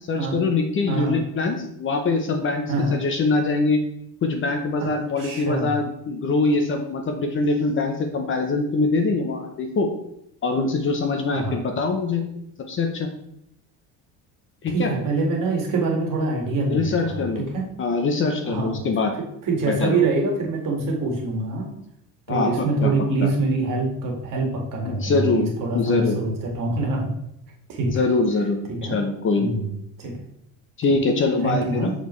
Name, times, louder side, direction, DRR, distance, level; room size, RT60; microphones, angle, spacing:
voice 1, 0.1-3.8 4.2-9.9 10.4-12.2 12.7-13.1 14.6-14.9 16.7-17.4 17.8-19.1 19.7-20.0 22.3-22.9 23.2-23.3 24.8-26.2 27.9-29.6 30.8-31.9, left 3 dB, 30° left, 4 dB, 0.7 m, -23 dB
voice 2, 0.9-1.2 2.7-2.9 4.8-4.9 5.2-5.7 11.3-11.6 14.7-17.6 18.5-18.8 19.5-21.7 22.3-27.1 27.7-28.0 28.7-29.0 29.4-29.7 30.0-30.1 31.4-31.9, right 3 dB, 55° right, 1 dB, 1.8 m, -25 dB
6.3 x 5.2 x 3.1 m, 0.76 s
cardioid pair, 145°, 40 cm